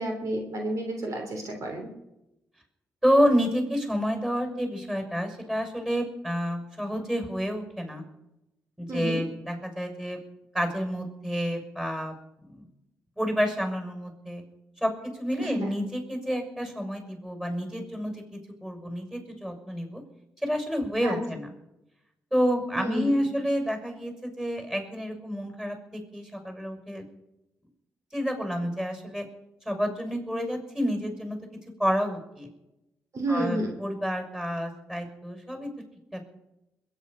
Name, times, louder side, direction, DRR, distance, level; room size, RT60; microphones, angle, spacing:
voice 1, 0.0-1.9 8.9-9.2 15.4-15.7 21.0-21.2 22.8-23.0 33.1-33.7, right 1 dB, 60° right, 3 dB, 3.2 m, -30 dB
voice 2, 3.0-8.0 8.8-10.2 10.5-12.1 12.4-12.7 13.2-14.4 14.8-20.0 20.4-21.5 22.3-27.1 28.1-29.3 29.6-31.4 31.8-32.5 33.3-35.7 36.1-36.3, equal, 5° right, 4 dB, 6.3 m, -29 dB
22.0 x 9.7 x 5.7 m, 0.90 s
supercardioid pair, 50°, 6 cm